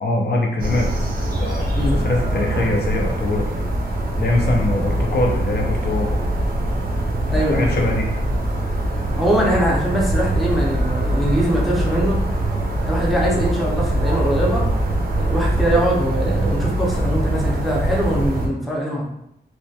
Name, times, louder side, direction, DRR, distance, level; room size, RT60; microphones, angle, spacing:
voice 1, 0.0-0.9 1.2-1.7 1.9-3.5 4.2-6.1 7.3-8.1, left 2 dB, 70° left, 0 dB, 0.5 m, -22 dB
sound 1, 0.6-18.5, right 1 dB, 55° right, 0.4 m, -22 dB
voice 2, 7.3-7.8 9.0-12.2 12.8-14.6 15.1-19.0, equal, ahead, -4 dB, 0.5 m, -22 dB
2.2 x 2.1 x 2.7 m, 0.79 s
wide cardioid pair, 135°, 18 cm